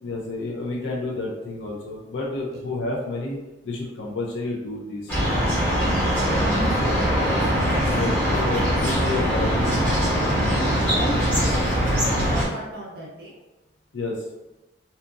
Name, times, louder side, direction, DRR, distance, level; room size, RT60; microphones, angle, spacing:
voice 1, 0.0-3.4 3.6-5.1 6.8-7.0 7.9-10.9 13.9-14.2, left 2 dB, 70° left, -3 dB, 0.5 m, -30 dB
sound 1, 5.1-12.5, equal, 10° left, 0.8 m, -22 dB
voice 2, 5.7-8.4 8.7-8.9 10.5-13.4, right 2 dB, 55° right, -3 dB, 0.5 m, -35 dB
2.8 x 2.5 x 2.4 m, 1.0 s
head